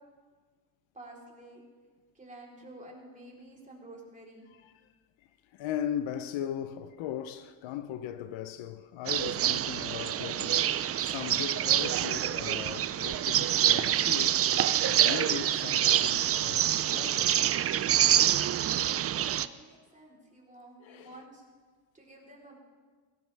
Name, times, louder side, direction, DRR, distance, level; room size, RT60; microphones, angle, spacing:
voice 1, 0.9-1.6 2.1-4.4 19.0-21.4 21.9-22.6, right 1 dB, 15° right, 3.8 m, -50 dB
voice 2, 4.5-4.9 5.2-14.4 14.8-17.3 20.8-21.2, left 10 dB, 65° left, 0.8 m, -38 dB
sound 1, 9.1-19.5, right 11 dB, 30° right, 0.4 m, -26 dB
18.0 x 16.5 x 3.4 m
cardioid pair, 105°, 49 cm